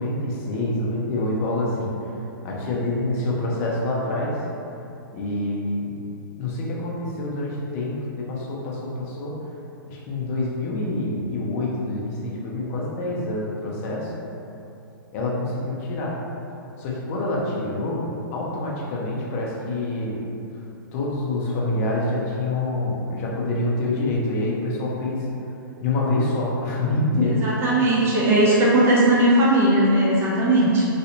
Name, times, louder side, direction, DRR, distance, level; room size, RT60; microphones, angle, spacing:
voice 1, 0.0-1.9 2.4-4.4 5.1-6.0 6.4-9.4 9.9-14.1 15.1-16.2 16.8-18.0 18.3-20.2 20.9-25.3 25.8-27.5, left 2 dB, 40° left, -4 dB, 0.7 m, -26 dB
voice 2, 27.3-30.9, right 1 dB, 20° right, -6 dB, 0.7 m, -18 dB
3.2 x 2.8 x 2.8 m, 2.8 s
hypercardioid pair, 130°, 12 cm